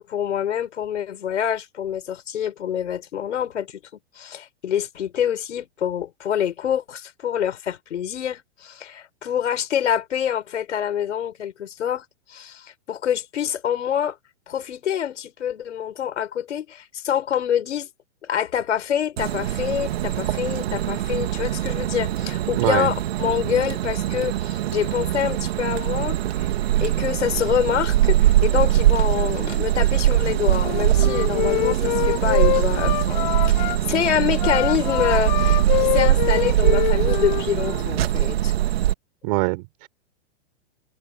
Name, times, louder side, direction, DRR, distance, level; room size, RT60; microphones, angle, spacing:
voice 1, 0.0-3.8 4.2-14.2 14.5-17.9 18.2-26.5 26.8-38.5, left 9 dB, 85° left, 5.5 m, -26 dB
sound 1, 19.2-38.9, right 13 dB, 60° right, 2.8 m, -22 dB
voice 2, 22.5-22.9 39.2-39.9, right 24 dB, 40° right, 4.2 m, -23 dB
Wind instrument woodwind instrument, 30.5-33.8 34.3-37.9, left 20 dB, 40° left, 2.1 m, -25 dB
hypercardioid pair, 160°, 34 cm